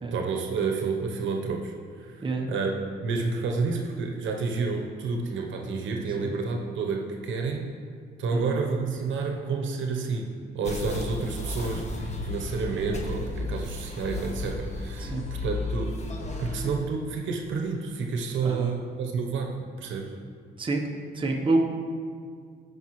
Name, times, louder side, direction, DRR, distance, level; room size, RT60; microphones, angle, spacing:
voice 1, 0.1-7.7 8.2-16.0 16.4-20.1, right 4 dB, 75° right, 2 dB, 1.0 m, -30 dB
sound 1, 10.6-16.8, left 2 dB, 35° left, 1.2 m, -33 dB
voice 2, 18.4-18.7 20.6-20.8 21.1-21.6, right 3 dB, 25° right, 0 dB, 0.9 m, -28 dB
14.0 x 5.4 x 3.1 m, 2.1 s
cardioid pair, 90°, 20 cm